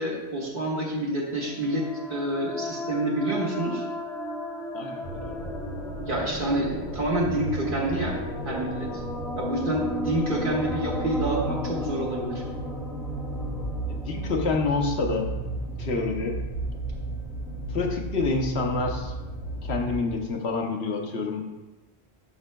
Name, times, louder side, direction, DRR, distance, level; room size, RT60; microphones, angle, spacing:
voice 1, 0.0-3.9 6.0-8.2 8.4-8.9 9.4-12.4, right 1 dB, 50° right, -3 dB, 1.6 m, -28 dB
sound 1, 1.4-15.1, left 1 dB, 5° left, 0.9 m, -36 dB
voice 2, 4.7-5.4 13.9-15.3 15.8-16.4 17.7-19.1 19.6-21.4, left 3 dB, 75° left, 2 dB, 1.1 m, -28 dB
sound 2, 5.0-20.1, right 1 dB, 45° left, 1.4 m, -34 dB
11.0 x 6.1 x 2.2 m, 1.1 s
omnidirectional pair, 1.1 m